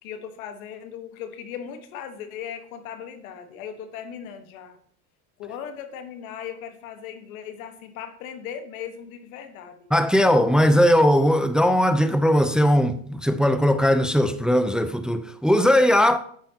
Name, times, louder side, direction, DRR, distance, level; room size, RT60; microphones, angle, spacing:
voice 1, 0.0-4.8 5.4-9.8 10.4-10.5, left 8 dB, 85° left, 1.4 m, -38 dB
voice 2, 9.9-16.2, equal, ahead, 0.5 m, -19 dB
10.0 x 8.7 x 2.9 m
supercardioid pair, 95°, 41 cm